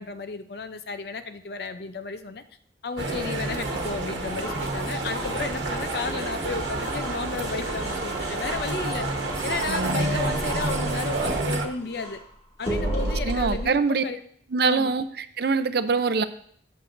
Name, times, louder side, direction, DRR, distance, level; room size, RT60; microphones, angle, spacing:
voice 1, 0.0-2.4 2.8-9.1 9.4-12.2 12.6-14.2 14.6-14.9, left 4 dB, 60° left, 10 dB, 0.5 m, -33 dB
sound 1, 3.0-11.7, right 2 dB, 85° right, 1.1 m, -29 dB
sound 2, 3.4-12.2 12.6-13.6, equal, 35° left, 2.4 m, -34 dB
voice 2, 9.7-10.2 13.2-14.0 14.5-16.2, right 4 dB, 60° right, 12 dB, 0.5 m, -24 dB
13.0 x 7.3 x 2.6 m, 0.62 s
head